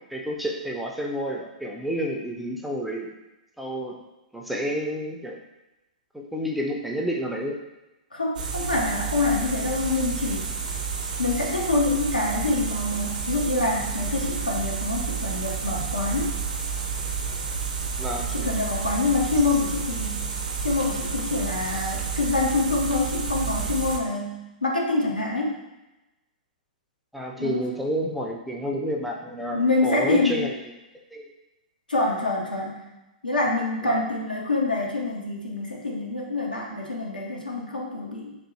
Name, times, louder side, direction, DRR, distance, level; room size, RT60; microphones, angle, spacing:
voice 1, 0.0-3.1 3.6-4.0 4.3-5.4 6.1-7.6 18.0-18.3 27.1-30.5 31.1-31.3 33.8-34.0, equal, ahead, -1 dB, 0.4 m, -30 dB
voice 2, 8.1-10.5 11.2-16.4 18.3-20.2 20.6-25.6 27.4-27.8 29.5-30.6 31.9-32.8 33.2-38.4, left 2 dB, 85° left, -2 dB, 0.7 m, -26 dB
sound 1, 8.4-24.0, right 6 dB, 65° right, 0.5 m, -30 dB
3.5 x 2.4 x 3.1 m, 0.99 s
figure-of-eight pair, 110°, 5 cm